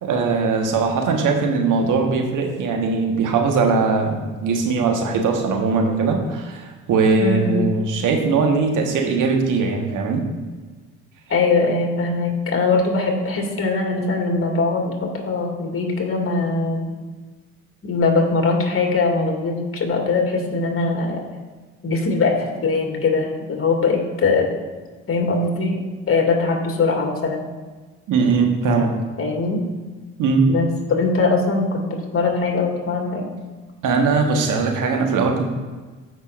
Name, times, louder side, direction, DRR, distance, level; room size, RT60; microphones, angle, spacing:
voice 1, 0.0-10.3 28.1-28.9 30.2-30.4 33.8-35.4, right 4 dB, 55° right, 2 dB, 1.5 m, -20 dB
voice 2, 7.2-7.7 11.3-16.9 17.8-21.3 21.8-24.5 25.1-25.8 26.1-27.5 29.2-29.6 30.5-33.3, left 3 dB, 35° left, 1 dB, 2.2 m, -21 dB
14.0 x 5.4 x 2.6 m, 1.3 s
hypercardioid pair, 60°, 37 cm